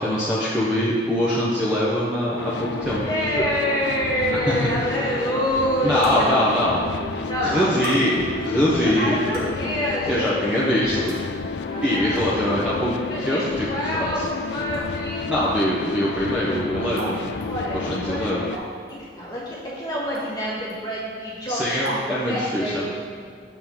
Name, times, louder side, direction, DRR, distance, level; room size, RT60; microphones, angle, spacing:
voice 1, 0.0-3.0 4.5-4.9 5.8-6.8 7.4-9.2 10.1-11.2 11.8-12.9 13.2-13.7 13.9-14.2 15.3-17.2 17.7-18.5 21.5-22.9, equal, 5° right, -8 dB, 0.7 m, -23 dB
sound 1, 2.4-18.6, left 4 dB, 85° left, 0.3 m, -31 dB
voice 2, 2.9-6.4 7.2-7.9 8.7-10.5 11.6-12.3 13.1-15.3 17.5-18.3 18.9-22.9, equal, 25° left, -7 dB, 1.5 m, -27 dB
sound 2, 4.7-4.8 6.0-6.1 7.1-7.2 7.8-8.0 9.1-9.6 10.5-10.6 11.1-11.2 11.9-12.2 12.7-12.8 13.8-13.9 14.7-14.9 15.4-15.6 17.0-17.2 17.4-17.5 18.5-18.9 20.1-20.3 20.7-20.8 21.8-22.0, right 1 dB, 60° right, 1.2 m, -34 dB
7.0 x 3.6 x 4.5 m, 2.1 s
head